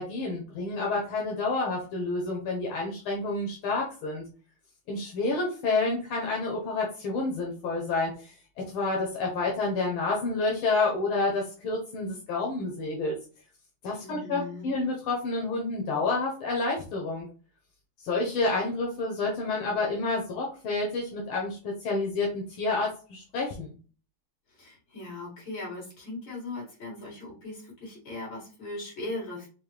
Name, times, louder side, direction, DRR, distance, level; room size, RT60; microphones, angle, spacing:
voice 1, 0.0-4.2 4.9-8.4 8.7-13.2 13.8-17.3 18.0-23.7, left 3 dB, 85° left, -1 dB, 1.8 m, -29 dB
voice 2, 14.0-14.7 24.5-29.5, left 2 dB, 65° left, -3 dB, 2.8 m, -39 dB
5.3 x 2.2 x 3.1 m, 0.36 s
omnidirectional pair, 2.3 m